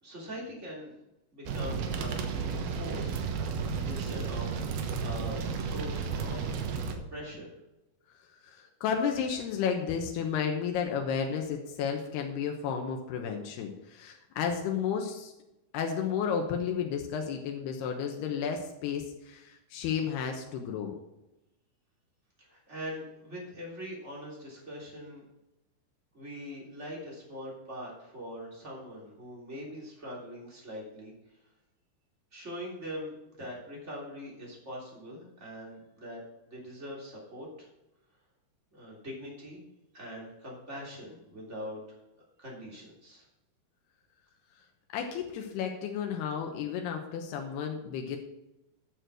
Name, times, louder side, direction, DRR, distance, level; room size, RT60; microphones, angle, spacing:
voice 1, 0.0-1.0 1.3-3.5 3.8-7.5 22.4-25.2 26.1-31.1 32.3-36.2 36.5-37.7 38.7-39.6 39.9-41.8 42.4-43.2, equal, 20° right, -3 dB, 3.1 m, -42 dB
sound 1, 1.5-6.9, right 5 dB, 80° right, 3.0 m, -33 dB
voice 2, 8.4-15.3 15.7-20.9 44.9-48.2, left 7 dB, 90° left, 2 dB, 3.1 m, -32 dB
10.5 x 6.9 x 6.3 m, 0.92 s
omnidirectional pair, 4.6 m